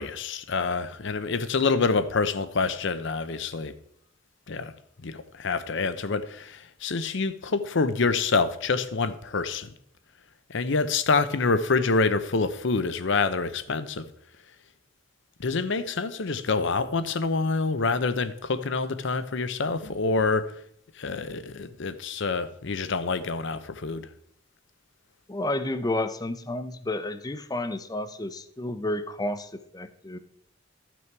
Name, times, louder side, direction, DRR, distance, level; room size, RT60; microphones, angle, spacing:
voice 1, 0.0-3.7 4.5-4.7 5.0-9.7 10.5-14.1 15.4-20.6 21.0-24.1, left 4 dB, 65° left, 0.7 m, -27 dB
voice 2, 25.3-30.2, left 1 dB, 20° left, 0.7 m, -31 dB
13.5 x 6.2 x 4.6 m
head